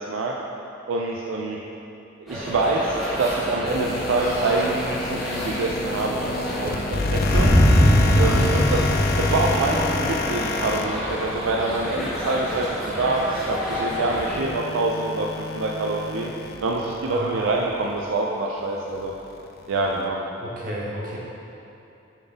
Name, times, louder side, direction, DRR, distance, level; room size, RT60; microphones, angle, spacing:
voice 1, 0.9-1.6 2.2-7.5 8.2-16.3 16.6-19.1 19.7-20.2, right 2 dB, 80° right, -1 dB, 0.4 m, -26 dB
sound 1, 2.3-14.4, equal, ahead, 1.3 m, -31 dB
sound 2, 3.7-17.7 18.1-18.2 18.9-20.0, left 3 dB, 50° left, 0.4 m, -28 dB
sound 3, 7.3-10.1, equal, 20° left, 0.8 m, -19 dB
voice 2, 20.4-21.2, equal, 45° right, -5 dB, 1.2 m, -32 dB
7.0 x 4.0 x 3.9 m, 2.8 s
head